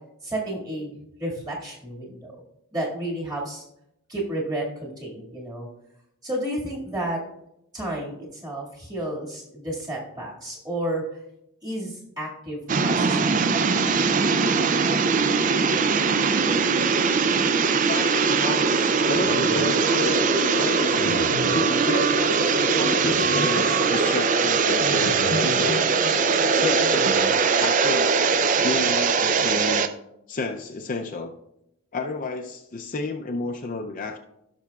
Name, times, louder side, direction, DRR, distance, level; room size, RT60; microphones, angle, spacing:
voice 1, 0.2-2.3 2.7-3.6 4.1-5.7 6.2-7.2 7.7-11.2 11.6-13.7, right 1 dB, 20° right, -4 dB, 1.9 m, -31 dB
sound 1, 12.7-29.9, right 5 dB, 35° right, 0.4 m, -21 dB
voice 2, 17.9-21.2 21.8-25.9 26.5-27.1 27.6-28.1 28.6-29.9 30.3-31.3 31.9-34.2, left 3 dB, 35° left, 3 dB, 0.5 m, -31 dB
sound 2, 19.1-27.7, left 2 dB, 70° left, 0.8 m, -32 dB
16.5 x 5.9 x 2.3 m, 0.82 s
head